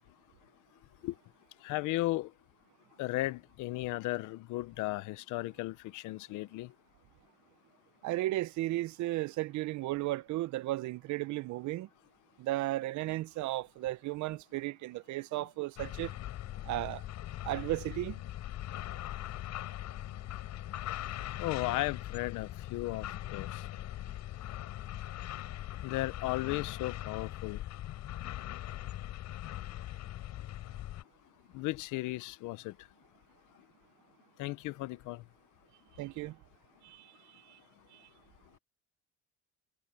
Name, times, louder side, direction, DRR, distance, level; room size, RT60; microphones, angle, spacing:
voice 1, 1.6-2.3 3.0-6.7 21.4-23.6 25.8-27.6 31.5-32.7 34.4-35.2, left 18 dB, 85° left, 1.0 m, -35 dB
voice 2, 8.0-11.9 12.4-16.1 16.6-17.0 17.4-18.2 36.0-36.4 36.8-37.6 37.9-38.1, right 17 dB, 70° right, 0.7 m, -35 dB
sound 1, 15.8-31.0, left 13 dB, 70° left, 4.0 m, -41 dB
cardioid pair, 125°, 30 cm